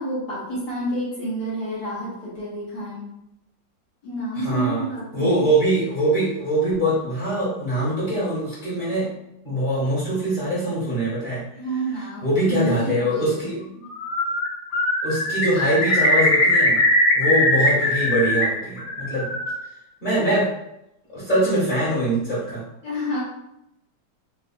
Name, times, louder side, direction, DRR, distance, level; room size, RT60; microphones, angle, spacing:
voice 1, 0.0-3.1 4.0-5.4 11.5-13.8 22.8-23.2, right 1 dB, 65° left, -8 dB, 1.4 m, -29 dB
voice 2, 4.3-9.1 9.4-11.4 12.2-13.6 15.0-16.8 17.1-19.3 20.0-20.5 21.1-22.6, right 1 dB, 30° left, -10 dB, 1.1 m, -23 dB
Bird, 13.9-14.5 14.7-18.4 18.8-19.6, left 1 dB, 90° left, 1.4 m, -20 dB
3.3 x 2.4 x 2.5 m, 0.83 s
omnidirectional pair, 2.0 m